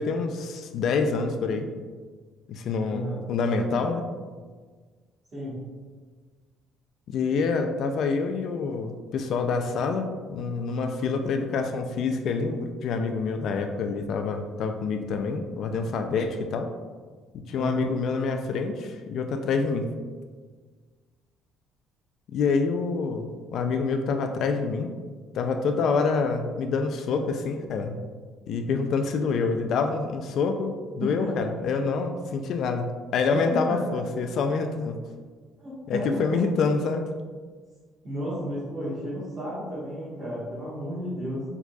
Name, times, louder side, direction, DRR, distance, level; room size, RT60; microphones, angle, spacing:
voice 1, 0.0-1.7 2.5-4.0 7.1-16.7 17.5-19.9 22.3-24.9 25.3-28.0 28.5-35.0 35.9-37.0, left 4 dB, 55° left, 5 dB, 0.3 m, -27 dB
voice 2, 5.3-5.6 17.5-17.9 31.0-31.5 33.3-33.8 35.6-36.4 38.0-41.4, equal, 30° right, -11 dB, 1.3 m, -32 dB
4.6 x 4.0 x 2.3 m, 1.5 s
cardioid pair, 155°, 0 cm